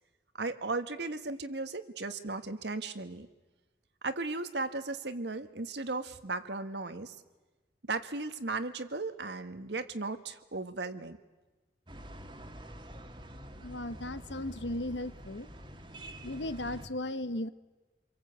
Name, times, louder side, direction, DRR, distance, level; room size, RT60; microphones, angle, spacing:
voice 1, 0.4-3.3 4.0-7.1 7.9-11.2, right 3 dB, 75° right, 10 dB, 1.5 m, -36 dB
sound 1, 11.9-16.9, equal, 25° right, 1.7 m, -47 dB
voice 2, 13.6-15.5 16.2-17.5, left 1 dB, 85° left, 12 dB, 1.1 m, -36 dB
27.5 x 23.0 x 8.2 m, 1.2 s
head